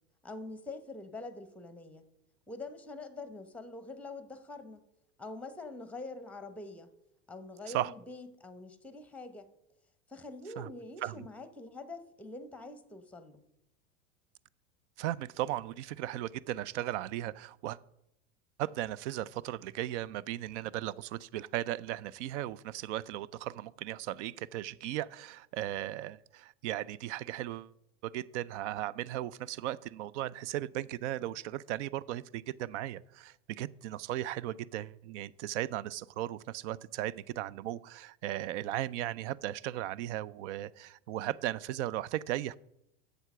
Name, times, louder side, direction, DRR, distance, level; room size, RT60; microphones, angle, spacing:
voice 1, 0.2-2.1 2.5-4.9 5.2-6.9 7.3-9.5 10.1-13.4, left 2 dB, 5° left, 0.9 m, -45 dB
voice 2, 15.0-17.8 18.6-27.7 28.0-42.6, right 13 dB, 65° right, 0.5 m, -36 dB
7.9 x 6.9 x 6.0 m
hypercardioid pair, 100°, 38 cm